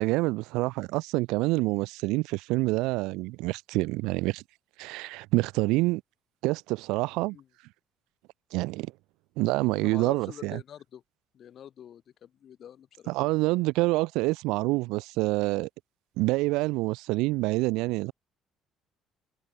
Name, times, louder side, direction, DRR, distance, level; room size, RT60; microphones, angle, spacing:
voice 1, 0.0-4.4 4.8-6.0 6.4-7.4 8.5-8.9 9.4-10.6 13.1-15.7 16.2-18.1, right 22 dB, 80° right, 1.5 m, -27 dB
voice 2, 9.8-11.0 11.3-13.3, left 9 dB, 55° left, 5.6 m, -46 dB
supercardioid pair, 80°, 0 cm